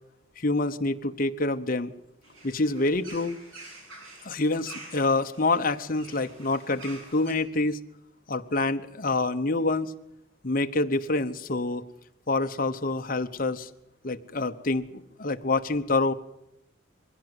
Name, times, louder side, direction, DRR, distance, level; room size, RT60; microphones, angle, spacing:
voice 1, 0.4-1.9 2.4-3.4 4.2-7.8 8.3-9.9 10.4-11.8 12.3-13.7 14.0-14.9 15.2-16.1, left 2 dB, 45° left, 7 dB, 1.0 m, -26 dB
sound 1, 2.2-7.3, right 2 dB, 85° right, 7.7 m, -47 dB
22.0 x 16.0 x 7.9 m, 0.85 s
head